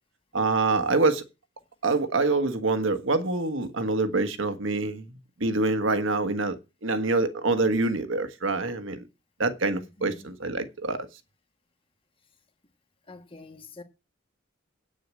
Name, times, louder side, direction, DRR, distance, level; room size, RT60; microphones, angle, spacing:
voice 1, 0.3-1.2 1.8-5.1 5.4-6.6 6.8-9.0 9.4-11.1, right 3 dB, 70° right, 1.5 m, -25 dB
voice 2, 9.8-10.3 13.1-13.8, left 3 dB, 25° left, 1.4 m, -46 dB
8.9 x 6.6 x 7.6 m
head